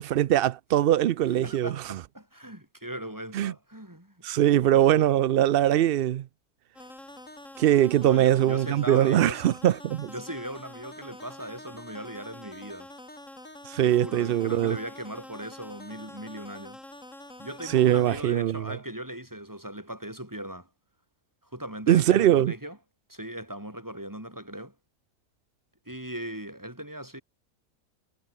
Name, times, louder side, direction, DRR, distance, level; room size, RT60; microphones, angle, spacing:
voice 1, 0.0-2.0 3.3-3.5 4.2-6.2 7.6-10.1 13.7-14.8 17.7-18.8 21.9-22.5, right 12 dB, 85° right, 0.5 m, -22 dB
voice 2, 1.4-4.1 4.7-5.0 8.0-9.4 10.0-12.9 13.8-16.8 17.4-20.7 21.5-22.8 23.1-24.7 25.9-27.2, right 1 dB, 10° right, 4.7 m, -39 dB
sound 1, 6.8-18.2, left 1 dB, 55° left, 8.3 m, -46 dB
omnidirectional pair, 1.5 m